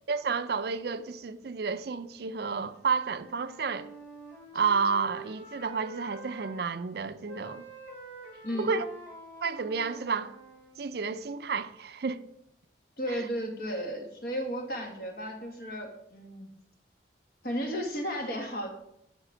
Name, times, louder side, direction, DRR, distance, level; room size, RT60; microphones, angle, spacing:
voice 1, 0.1-3.9 4.5-7.6 8.6-8.9 9.4-10.3 10.8-12.2 13.1-13.2, right 5 dB, 55° right, 0.4 m, -31 dB
Wind instrument woodwind instrument, 2.7-6.6 7.3-10.8, right 3 dB, 10° left, 2.8 m, -47 dB
voice 2, 13.0-16.5 17.4-18.7, equal, 55° left, 1.7 m, -34 dB
9.8 x 5.9 x 4.9 m
head